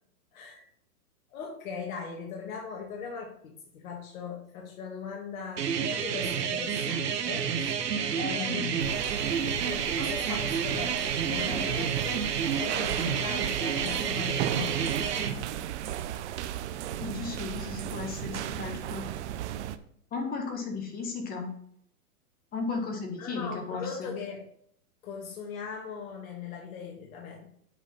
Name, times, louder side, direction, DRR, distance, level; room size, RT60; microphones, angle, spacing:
voice 1, 0.3-0.6 1.3-7.8 8.1-8.8 9.5-12.3 12.6-15.4 23.2-24.5 25.0-27.5, left 6 dB, 60° left, 0 dB, 2.0 m, -39 dB
sound 1, 5.6-15.3, right 7 dB, 85° right, 1.3 m, -29 dB
sound 2, 8.8-19.8, right 11 dB, 45° right, 0.7 m, -36 dB
voice 2, 17.0-19.0 20.1-21.5 22.5-24.1, left 4 dB, 20° left, 3 dB, 1.6 m, -35 dB
8.2 x 5.3 x 5.5 m, 0.67 s
hypercardioid pair, 140°, 47 cm